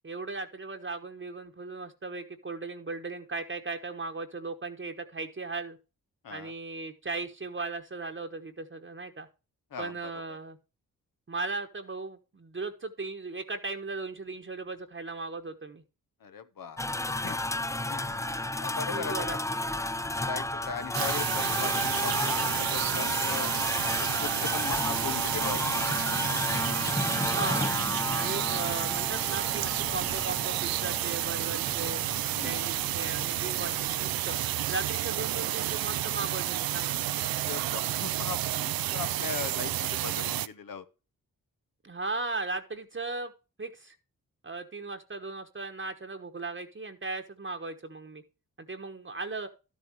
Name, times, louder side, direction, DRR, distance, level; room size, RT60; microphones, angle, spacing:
voice 1, 0.0-5.8 6.3-9.3 9.8-10.6 11.3-15.8 18.9-19.4 27.3-27.7 28.1-32.0 32.4-34.4 34.7-37.0 41.8-43.3 43.6-43.9 44.4-48.2 48.6-49.5, right 3 dB, 35° right, 1.2 m, -37 dB
voice 2, 9.7-10.4 16.2-17.4 17.9-18.3 18.6-19.4 20.2-23.5 24.0-25.6 25.9-26.0 32.3-32.7 37.4-40.8, left 6 dB, 70° left, 1.0 m, -39 dB
sound 1, 16.8-34.4, left 1 dB, 10° left, 0.5 m, -33 dB
sound 2, 20.9-40.5, right 13 dB, 75° right, 0.5 m, -31 dB
12.0 x 7.5 x 3.0 m
supercardioid pair, 45°, 36 cm